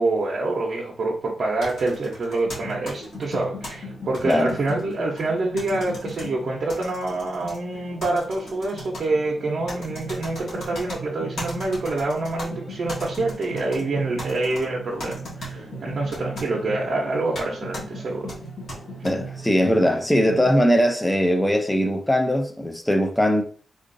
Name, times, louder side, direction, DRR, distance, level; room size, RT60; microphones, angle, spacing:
voice 1, 0.0-18.3, right 2 dB, 45° right, 0.7 m, -26 dB
sound 1, 1.6-3.7 4.1-5.3 5.6-6.3 6.7-7.6 8.0-9.0 9.7-11.0 11.4-12.5 12.9-13.8 14.2-14.6 15.0-15.5 16.1-16.5 17.3-17.5 17.7-17.8 18.3-19.1, left 1 dB, 70° left, 1.6 m, -37 dB
sound 2, 2.4-20.6, right 1 dB, 40° left, 1.6 m, -38 dB
voice 2, 4.2-4.6 19.0-23.4, equal, 5° left, 0.3 m, -20 dB
3.7 x 2.5 x 2.5 m
wide cardioid pair, 170°, 0 cm